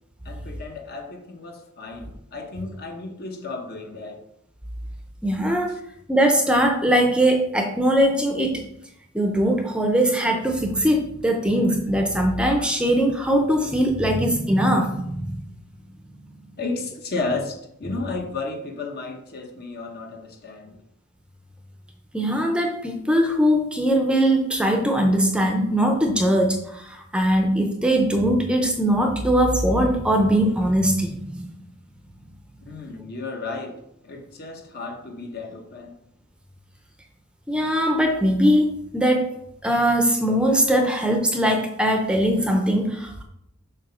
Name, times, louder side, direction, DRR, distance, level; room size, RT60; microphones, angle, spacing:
voice 1, 0.2-4.2 5.7-5.8 16.6-20.8 32.7-36.0, left 3 dB, 50° left, 0.9 m, -33 dB
voice 2, 5.2-5.8 6.1-8.6 9.1-15.4 22.1-31.5 37.5-39.3 39.6-43.2, equal, 5° right, 0.6 m, -21 dB
7.1 x 2.9 x 5.6 m
head